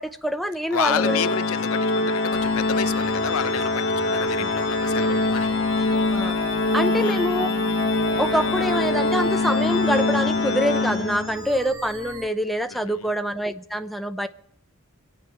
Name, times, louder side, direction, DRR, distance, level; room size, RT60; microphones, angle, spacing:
voice 1, 0.0-1.2 4.4-4.5 5.8-6.4 6.7-7.5 8.2-14.3, equal, ahead, 0.6 m, -25 dB
voice 2, 0.7-5.5 6.8-7.3 12.7-13.1, left 8 dB, 80° left, 0.6 m, -30 dB
Organ, 0.8-11.5, left 2 dB, 60° left, 1.2 m, -23 dB
sound 1, 2.3-12.3, right 2 dB, 15° right, 0.9 m, -39 dB
Bowed string instrument, 8.0-12.5, equal, 35° left, 1.3 m, -42 dB
25.5 x 8.8 x 5.6 m
head